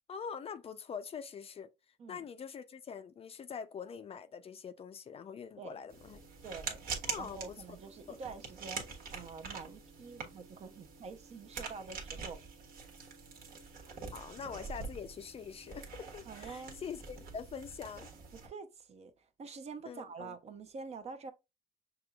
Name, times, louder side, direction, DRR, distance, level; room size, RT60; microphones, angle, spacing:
voice 1, 0.1-1.7 2.1-6.2 7.0-7.6 8.1-8.2 14.1-18.1 19.9-20.4, left 6 dB, 35° left, 0.4 m, -44 dB
sound 1, 5.9-18.5, right 5 dB, 60° right, 1.3 m, -45 dB
voice 2, 6.4-6.8 7.2-12.4 16.3-16.8 18.4-21.3, right 4 dB, 40° right, 0.6 m, -47 dB
5.9 x 2.9 x 2.3 m
cardioid pair, 110°, 17 cm